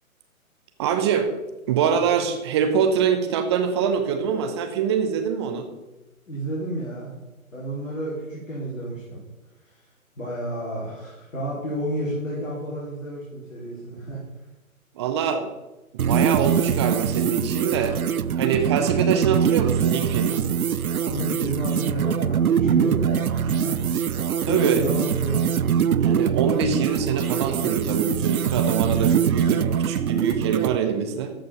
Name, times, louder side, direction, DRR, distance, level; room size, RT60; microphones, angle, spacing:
voice 1, 0.8-1.3 1.7-5.7 15.0-15.5 16.1-18.0 18.4-20.4 24.4-24.8 26.0-31.3, right 7 dB, 20° right, 6 dB, 0.9 m, -24 dB
voice 2, 6.3-7.1 7.5-9.2 10.2-14.2 21.1-24.2 24.4-25.5, right 1 dB, 60° left, -6 dB, 3.7 m, -31 dB
sound 1, 16.0-30.8, right 8 dB, 80° right, 0.5 m, -23 dB
13.5 x 5.3 x 5.4 m, 1.0 s
figure-of-eight pair, 135°, 43 cm